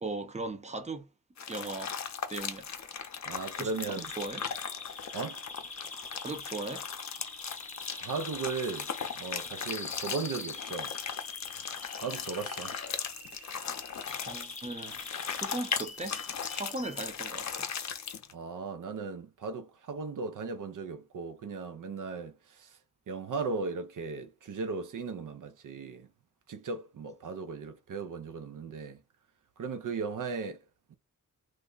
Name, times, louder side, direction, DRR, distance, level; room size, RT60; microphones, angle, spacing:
voice 1, 0.0-1.1 1.5-1.9 2.3-2.7 3.6-4.4 6.1-6.9 14.2-16.2 16.5-17.7, right 2 dB, 20° right, 0.7 m, -38 dB
sound 1, 1.4-18.3, left 7 dB, 55° left, 0.6 m, -38 dB
Bird vocalization bird call bird song, 3.1-17.1, left 3 dB, 25° left, 0.6 m, -45 dB
voice 2, 3.3-4.1 5.1-5.4 7.9-11.0 11.5-11.6 12.0-12.8 18.3-22.8 23.1-26.1 26.5-29.0 29.6-30.9, right 4 dB, 70° right, 0.5 m, -37 dB
3.2 x 2.1 x 3.8 m
wide cardioid pair, 125°, 33 cm